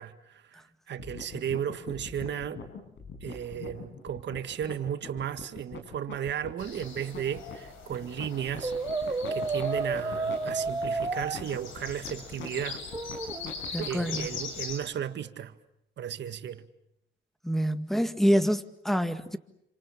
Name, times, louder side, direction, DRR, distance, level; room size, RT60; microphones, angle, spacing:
voice 1, 0.0-2.7 3.2-8.7 9.0-12.8 13.8-15.6 16.0-16.7, right 9 dB, 65° right, 1.9 m, -35 dB
sound 1, 1.0-14.4, left 5 dB, 70° left, 6.8 m, -42 dB
sound 2, 6.6-14.8, left 5 dB, 90° left, 6.4 m, -42 dB
Brass instrument, 8.6-11.4 12.9-13.5, right 3 dB, 20° right, 1.8 m, -31 dB
voice 2, 13.7-14.3 17.4-19.4, equal, ahead, 1.9 m, -26 dB
29.0 x 26.5 x 7.3 m
cardioid pair, 90°, 20 cm